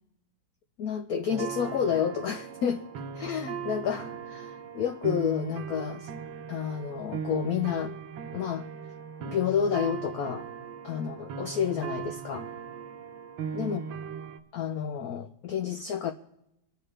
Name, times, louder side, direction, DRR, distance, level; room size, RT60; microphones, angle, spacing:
voice 1, 0.8-2.8 3.1-6.1 6.5-7.9 8.3-8.7 9.2-10.5 10.8-12.5 13.5-13.8 14.5-16.1, left 8 dB, 70° left, 7 dB, 0.9 m, -30 dB
sound 1, 1.3-14.4, right 7 dB, 75° right, 1.6 m, -38 dB
25.5 x 9.7 x 3.3 m, 0.83 s
omnidirectional pair, 2.2 m